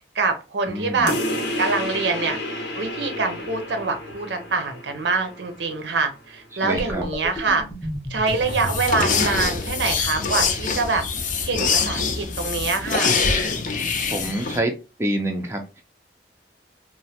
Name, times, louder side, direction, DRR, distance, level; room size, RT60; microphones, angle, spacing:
voice 1, 0.1-1.1 1.6-2.4 2.8-7.7 8.1-11.1 11.5-13.1, right 4 dB, 80° right, 0.6 m, -25 dB
voice 2, 0.7-1.1 6.6-7.0 14.1-14.7 15.0-15.8, right 1 dB, 15° right, 0.4 m, -26 dB
sound 1, 1.1-6.1, left 1 dB, 75° left, 0.7 m, -31 dB
sound 2, 6.8-13.3, equal, 10° left, 0.8 m, -34 dB
sound 3, 8.3-14.6, left 5 dB, 45° left, 0.4 m, -24 dB
3.1 x 2.1 x 2.7 m
head